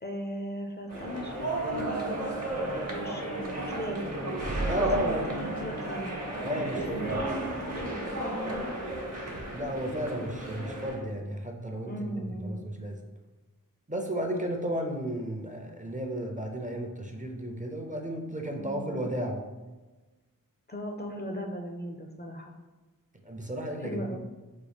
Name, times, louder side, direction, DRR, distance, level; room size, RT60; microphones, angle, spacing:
voice 1, 0.0-4.2 4.8-6.2 6.9-8.7 11.9-12.7 18.5-19.1 20.7-22.6 23.8-24.2, equal, 30° left, 2 dB, 0.5 m, -38 dB
sound 1, 0.9-11.0, right 2 dB, 50° right, 0.9 m, -33 dB
voice 2, 4.7-5.4 6.4-7.2 9.5-13.0 13.9-19.4 23.2-24.2, right 1 dB, 20° right, 2 dB, 0.5 m, -33 dB
5.0 x 2.2 x 3.4 m, 1.2 s
wide cardioid pair, 50°, 34 cm